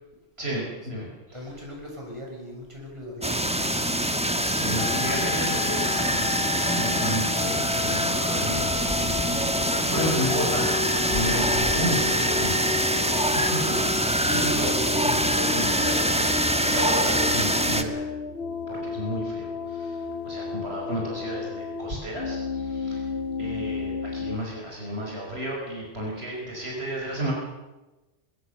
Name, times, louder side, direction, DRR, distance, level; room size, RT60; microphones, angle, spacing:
voice 1, 0.4-1.4 4.5-10.8 11.1-12.6 13.0-18.1 18.7-23.1 23.4-27.3, equal, 55° right, -2 dB, 5.5 m, -32 dB
voice 2, 1.3-3.3, left 1 dB, 25° right, -2 dB, 7.5 m, -39 dB
sound 1, 3.2-17.8, right 1 dB, 5° right, 1.4 m, -24 dB
sound 2, 4.8-24.4, left 5 dB, 55° left, 1.1 m, -32 dB
22.0 x 21.0 x 6.7 m, 1.1 s
omnidirectional pair, 1.3 m